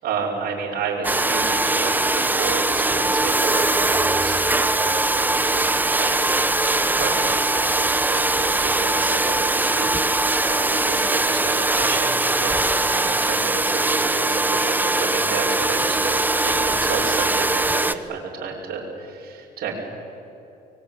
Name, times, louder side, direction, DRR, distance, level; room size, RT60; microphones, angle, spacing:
voice 1, 0.0-5.7 6.0-6.2 6.9-12.5 12.9-19.7, right 5 dB, 65° right, -4 dB, 6.2 m, -31 dB
Domestic sounds home sounds, 1.0-17.9, right 2 dB, 10° right, 1.0 m, -21 dB
25.0 x 22.5 x 9.4 m, 2.6 s
cardioid pair, 110°, 17 cm